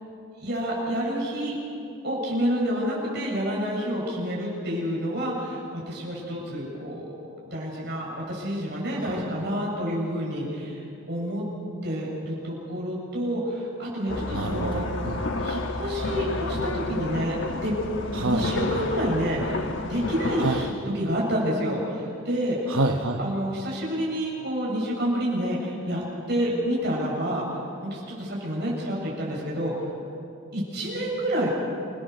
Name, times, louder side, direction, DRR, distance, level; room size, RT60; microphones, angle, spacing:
voice 1, 0.4-1.6 2.0-7.1 7.4-11.4 11.8-14.9 15.4-17.4 17.6-17.7 18.2-20.7 20.9-22.7 23.2-29.7 30.5-31.5, equal, 50° right, -3 dB, 7.3 m, -28 dB
voice 2, 9.0-9.5 14.3-15.5 18.1-18.4 20.4-20.6 22.7-23.2, right 2 dB, 80° right, 3 dB, 1.1 m, -28 dB
sound 1, 14.1-20.7, left 2 dB, 60° left, 1.4 m, -30 dB
28.5 x 18.0 x 6.8 m, 2.6 s
head